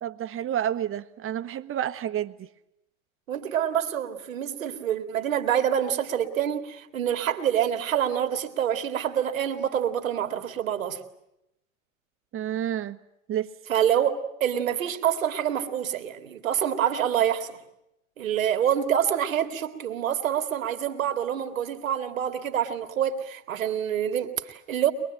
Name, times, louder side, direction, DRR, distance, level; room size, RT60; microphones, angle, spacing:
voice 1, 0.0-2.5 12.3-13.0 13.3-13.5, right 10 dB, 35° right, 1.3 m, -29 dB
voice 2, 3.3-11.0 13.7-17.6 18.2-24.9, right 9 dB, 85° right, 2.3 m, -26 dB
23.0 x 22.5 x 9.1 m
hypercardioid pair, 95°, 39 cm